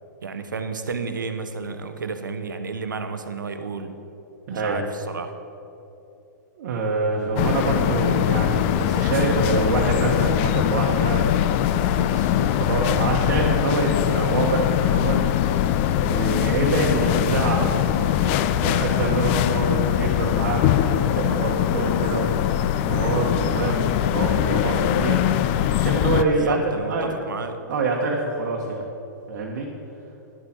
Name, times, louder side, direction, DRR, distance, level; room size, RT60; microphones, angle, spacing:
voice 1, 0.2-4.0 4.6-5.3 26.2-27.6, right 4 dB, 80° right, 8 dB, 0.8 m, -31 dB
voice 2, 4.5-4.8 6.6-11.6 12.0-20.6 20.9-22.5 22.8-26.6 26.9-27.1 27.7-28.8 29.3-29.7, right 3 dB, 55° right, -2 dB, 1.2 m, -26 dB
sound 1, 7.4-26.2, left 11 dB, 40° left, 0.4 m, -22 dB
10.5 x 7.1 x 4.4 m, 2.8 s
hypercardioid pair, 115°, 10 cm